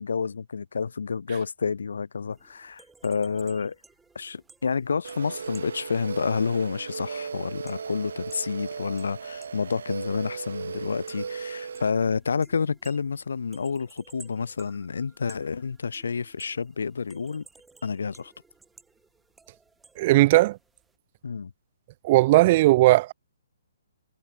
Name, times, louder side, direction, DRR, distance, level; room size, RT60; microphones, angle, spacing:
voice 1, 0.0-3.8 4.1-17.4 17.8-18.3 21.2-21.5, left 5 dB, 75° left, 0.6 m, -29 dB
sound 1, 2.3-21.0, right 4 dB, 5° right, 3.2 m, -57 dB
sound 2, 5.0-11.9, right 6 dB, 70° right, 0.7 m, -36 dB
voice 2, 20.0-20.6 22.0-23.1, right 18 dB, 40° right, 0.6 m, -17 dB
hypercardioid pair, 140°, 0 cm